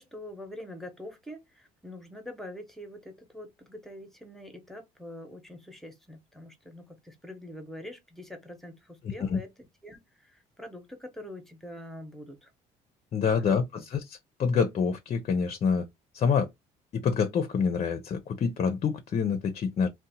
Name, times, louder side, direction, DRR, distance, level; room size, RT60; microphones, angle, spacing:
voice 1, 0.0-9.5 9.8-12.5 13.2-13.5, left 1 dB, ahead, 0.8 m, -44 dB
voice 2, 13.1-15.9 16.1-16.5 16.9-19.9, left 6 dB, 40° left, 0.5 m, -27 dB
2.7 x 2.1 x 2.7 m
cardioid pair, 110°, 17 cm